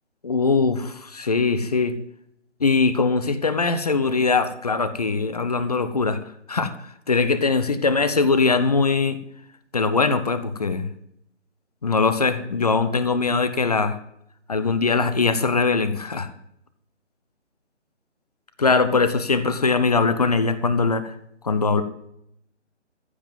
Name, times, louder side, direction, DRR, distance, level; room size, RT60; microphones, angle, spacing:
voice 1, 0.2-2.0 2.6-6.2 6.5-6.7 7.1-9.2 9.7-10.9 11.8-14.0 14.5-16.3 18.6-21.1 21.4-21.8, left 4 dB, 35° left, 12 dB, 0.9 m, -21 dB
14.5 x 5.9 x 9.0 m, 0.73 s
figure-of-eight pair, 150°, 36 cm